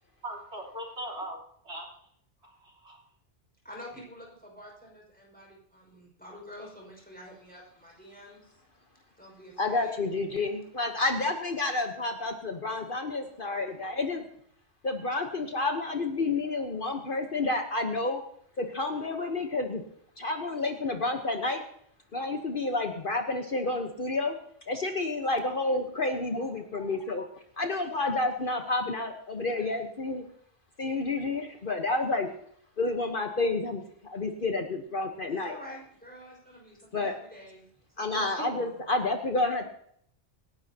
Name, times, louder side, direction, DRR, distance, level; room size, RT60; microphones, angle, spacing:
voice 1, 0.2-1.4 1.6-1.9 2.4-3.0 38.1-38.5, right 1 dB, 65° right, -1 dB, 3.9 m, -39 dB
voice 2, 3.6-8.4 9.2-10.0 35.3-37.7 38.0-38.9, left 1 dB, 5° left, -1 dB, 5.3 m, -48 dB
voice 3, 9.6-14.2 14.8-18.2 18.6-19.8 20.2-21.6 22.1-24.4 24.7-27.3 27.6-30.2 30.8-32.3 32.8-35.6 36.9-37.1 38.0-39.7, left 2 dB, 50° left, 4 dB, 1.2 m, -30 dB
26.0 x 11.0 x 2.9 m, 0.66 s
omnidirectional pair, 1.2 m